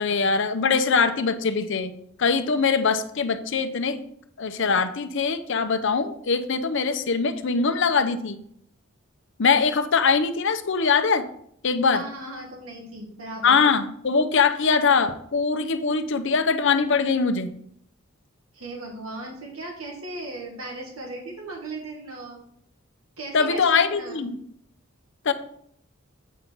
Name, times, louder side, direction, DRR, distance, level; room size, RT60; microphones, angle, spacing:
voice 1, 0.0-1.9 2.2-4.0 4.4-8.4 9.4-11.2 11.6-12.0 13.4-17.5 23.3-24.4 25.2-25.3, left 5 dB, 65° left, 9 dB, 0.7 m, -22 dB
voice 2, 11.9-13.6 18.5-22.4 23.2-24.3, right 2 dB, 85° right, -1 dB, 1.9 m, -37 dB
8.3 x 5.5 x 4.5 m, 0.67 s
head